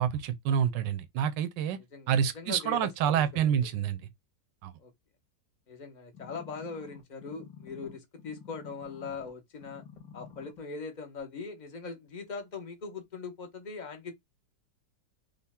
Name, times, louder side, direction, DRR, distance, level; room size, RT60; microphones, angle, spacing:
voice 1, 0.0-1.8 2.1-4.0 4.6-4.7, right 8 dB, 80° right, 1.3 m, -28 dB
voice 2, 1.9-3.7 4.8-4.9 5.7-9.8 10.1-14.1, left 4 dB, 35° left, 0.8 m, -41 dB
sound 1, 6.1-9.3 9.6-10.6 11.2-11.3, left 7 dB, 65° left, 2.1 m, -50 dB
5.3 x 2.3 x 3.5 m
omnidirectional pair, 2.0 m